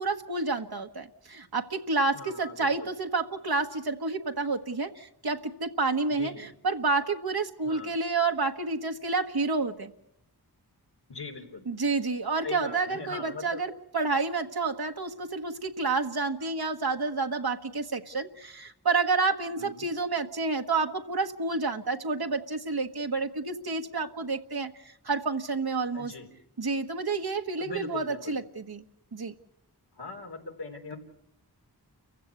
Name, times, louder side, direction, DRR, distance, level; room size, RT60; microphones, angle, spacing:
voice 1, 0.0-9.9 11.6-26.1 26.6-28.8 29.1-29.4, right 3 dB, 70° right, 5 dB, 1.4 m, -29 dB
voice 2, 2.1-2.7 6.2-6.5 7.7-7.9 11.1-11.6 12.4-13.6 19.6-19.7 25.9-26.3 27.6-28.3 30.0-31.0, left 3 dB, 85° left, 1 dB, 3.8 m, -40 dB
29.5 x 16.0 x 8.3 m, 0.79 s
wide cardioid pair, 55°, 39 cm